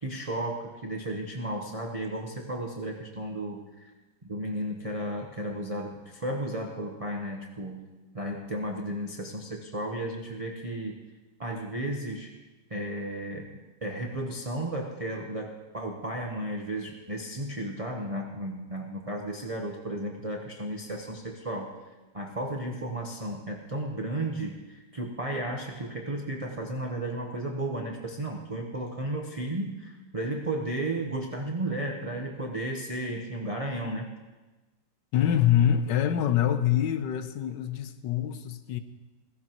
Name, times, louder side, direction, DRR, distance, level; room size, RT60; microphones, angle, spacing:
voice 1, 0.0-3.9 4.2-11.0 11.4-12.3 12.7-21.8 22.1-34.1, right 1 dB, 30° right, 1 dB, 0.7 m, -34 dB
voice 2, 35.1-38.8, left 10 dB, 75° left, 10 dB, 1.4 m, -25 dB
15.5 x 15.5 x 3.0 m, 1.2 s
omnidirectional pair, 2.0 m